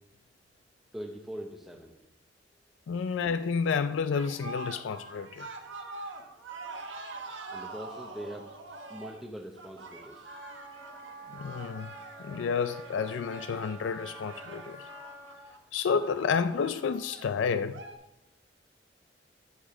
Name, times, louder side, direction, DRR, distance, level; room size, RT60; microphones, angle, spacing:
voice 1, 0.9-2.0 7.5-8.5 8.9-10.3, equal, ahead, 0.8 m, -42 dB
voice 2, 2.9-5.5 11.3-11.9 12.2-14.9 15.7-17.8, left 6 dB, 80° left, 0.4 m, -30 dB
sound 1, 4.1-17.9, right 3 dB, 85° right, 1.3 m, -45 dB
Wind instrument woodwind instrument, 10.2-15.4, equal, 65° right, 3.2 m, -48 dB
13.0 x 7.2 x 3.8 m
head